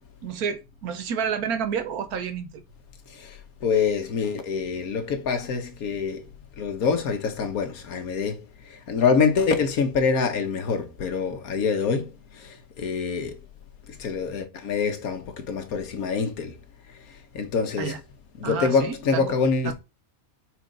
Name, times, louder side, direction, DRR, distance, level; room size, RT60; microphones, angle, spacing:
voice 1, 0.2-2.6 17.8-18.0 18.4-19.4 19.6-19.7, right 7 dB, 85° right, 1.4 m, -30 dB
voice 2, 3.1-6.3 6.6-13.4 13.9-16.5 17.3-18.0 18.4-19.7, left 5 dB, 75° left, 1.6 m, -25 dB
4.8 x 4.7 x 5.2 m
omnidirectional pair, 1.5 m